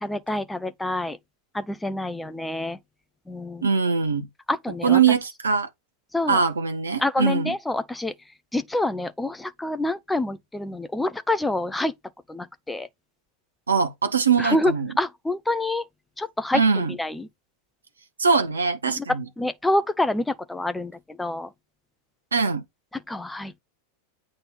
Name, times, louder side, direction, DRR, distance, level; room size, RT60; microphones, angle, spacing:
voice 1, 0.0-1.2 1.5-2.8 3.3-3.7 4.5-5.0 6.1-6.4 7.0-8.1 8.5-11.9 12.3-12.9 14.4-15.8 16.2-17.3 18.9-19.0 19.4-21.5 23.1-23.5, left 2 dB, 5° left, 0.6 m, -27 dB
voice 2, 3.6-4.3 4.8-5.7 6.3-7.5 13.7-14.9 16.5-17.0 18.2-19.2 22.3-22.6, right 5 dB, 75° right, 1.0 m, -22 dB
8.6 x 3.8 x 4.1 m
figure-of-eight pair, 90°, 0 cm